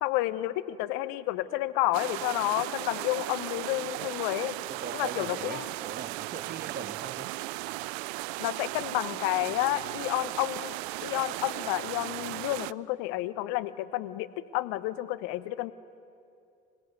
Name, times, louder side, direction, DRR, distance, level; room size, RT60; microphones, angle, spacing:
voice 1, 0.0-4.5 4.9-5.7 8.4-10.7 11.0-14.3 14.5-15.7, left 16 dB, 70° left, 14 dB, 1.0 m, -30 dB
sound 1, 1.9-12.7, right 20 dB, 75° right, 0.5 m, -36 dB
voice 2, 4.7-7.3, right 5 dB, 30° right, 10 dB, 1.3 m, -41 dB
26.5 x 17.0 x 9.6 m, 2.5 s
hypercardioid pair, 55°, 33 cm